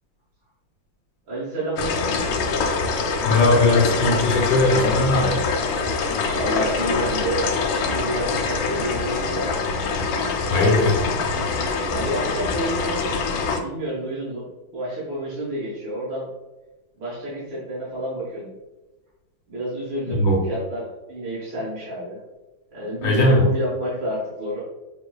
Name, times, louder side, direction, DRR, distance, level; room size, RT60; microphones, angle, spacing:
voice 1, 1.3-2.2 6.3-9.5 10.5-11.0 11.9-13.1 13.6-16.3 17.0-18.6 19.5-22.2 22.7-24.6, right 1 dB, 70° right, -8 dB, 1.8 m, -29 dB
sound 1, 1.8-13.6, left 4 dB, 90° left, 1.4 m, -24 dB
voice 2, 3.2-5.4 10.5-10.9 20.1-20.4 23.0-23.4, left 2 dB, 70° left, -1 dB, 1.4 m, -18 dB
6.0 x 3.1 x 2.2 m, 1.1 s
omnidirectional pair, 2.2 m